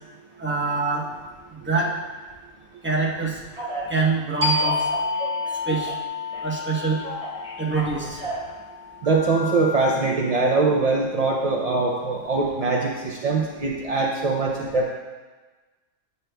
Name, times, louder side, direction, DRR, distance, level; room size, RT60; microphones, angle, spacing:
voice 1, 0.4-1.0 1.5-1.9 2.8-3.4 3.9-4.9 5.6-6.0 6.4-7.0 7.6-8.2, right 4 dB, 10° right, -4 dB, 0.8 m, -25 dB
Telephone, 3.5-3.9 4.4-6.0 6.3-8.5 9.0-9.7, equal, 5° left, 2.2 m, -34 dB
sound 1, 4.4-9.7, left 3 dB, 30° right, 1.3 m, -29 dB
voice 2, 9.0-14.9, right 3 dB, 65° right, -2 dB, 0.4 m, -22 dB
9.2 x 6.6 x 2.2 m, 1.3 s
omnidirectional pair, 1.4 m